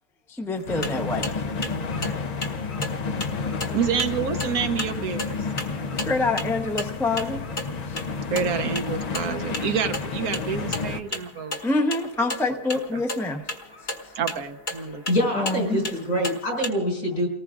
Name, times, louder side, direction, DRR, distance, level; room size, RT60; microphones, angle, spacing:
voice 1, 0.3-1.4 2.6-3.3 5.7-7.4 7.9-8.0 11.6-13.4 15.3-16.0, left 2 dB, ahead, 3 dB, 0.6 m, -27 dB
sound 1, 0.6-16.7, left 2 dB, 35° left, 1.2 m, -36 dB
sound 2, 0.7-11.0, left 4 dB, 50° left, 0.4 m, -30 dB
voice 2, 3.7-5.4 8.3-11.6 12.5-12.6 14.1-15.0, right 7 dB, 70° right, 8 dB, 1.2 m, -28 dB
voice 3, 15.1-17.3, equal, 70° left, -1 dB, 5.3 m, -25 dB
30.0 x 19.0 x 2.5 m, 0.90 s
omnidirectional pair, 1.6 m